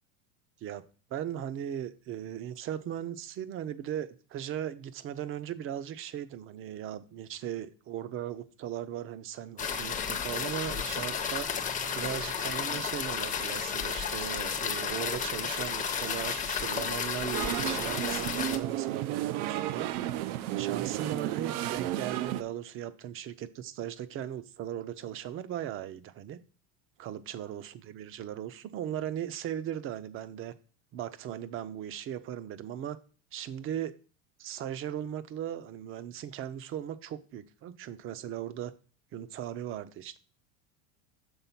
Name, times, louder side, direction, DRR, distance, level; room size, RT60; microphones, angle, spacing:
voice 1, 1.1-11.5 11.9-20.0 20.6-26.4 27.0-30.5 30.9-33.0 33.3-33.9 34.4-38.7 39.1-40.2, right 10 dB, 30° right, 0.5 m, -38 dB
sound 1, 9.6-18.6, left 6 dB, 20° left, 0.6 m, -32 dB
sound 2, 17.3-22.4, right 13 dB, 80° right, 0.6 m, -32 dB
7.0 x 3.7 x 5.7 m
supercardioid pair, 130°, 43 cm